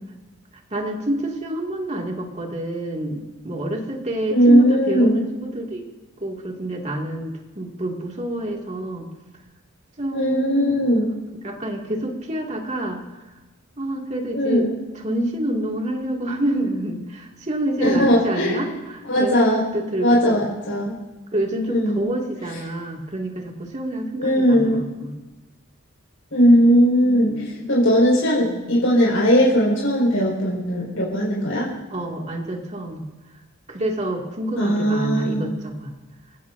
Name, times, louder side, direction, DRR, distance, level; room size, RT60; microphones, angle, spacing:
voice 1, 0.7-5.8 6.2-9.1 10.0-10.9 11.4-13.0 13.8-14.7 14.9-20.4 21.3-25.1 31.9-33.0 33.7-35.9, right 1 dB, 35° right, 0 dB, 2.3 m, -27 dB
voice 2, 4.3-5.2 10.1-11.1 14.3-14.7 17.8-18.7 19.1-19.6 20.0-21.0 21.7-22.1 24.2-24.8 26.3-31.7 34.5-35.4, equal, 90° left, -5 dB, 5.1 m, -18 dB
28.5 x 15.5 x 2.7 m, 1.1 s
head